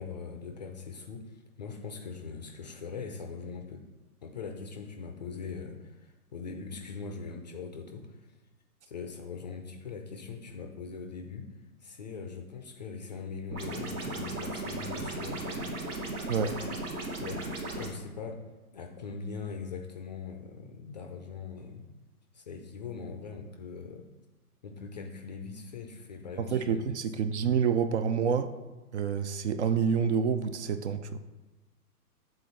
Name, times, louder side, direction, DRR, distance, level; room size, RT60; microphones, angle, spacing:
voice 1, 0.0-3.8 4.2-8.3 8.9-11.5 11.8-15.8 17.1-18.4 18.7-21.9 22.3-24.1 24.6-27.3, left 5 dB, 30° left, 4 dB, 0.4 m, -41 dB
sound 1, 13.5-17.9, right 2 dB, 70° right, 1.4 m, -36 dB
voice 2, 26.4-28.5 28.9-31.2, right 6 dB, 50° right, 11 dB, 0.5 m, -28 dB
7.5 x 3.8 x 4.0 m, 1.1 s
hypercardioid pair, 125°, 46 cm